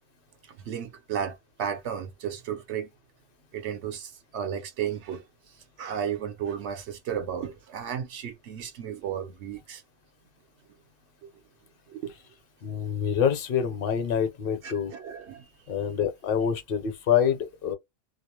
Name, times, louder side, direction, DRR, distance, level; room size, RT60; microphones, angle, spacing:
voice 1, 0.5-2.9 3.5-9.8 11.2-11.3 11.9-12.1 14.6-15.5, right 8 dB, 70° right, 0.9 m, -34 dB
voice 2, 12.6-14.9 15.7-17.7, left 8 dB, 55° left, 0.8 m, -26 dB
2.3 x 2.0 x 2.9 m
omnidirectional pair, 1.2 m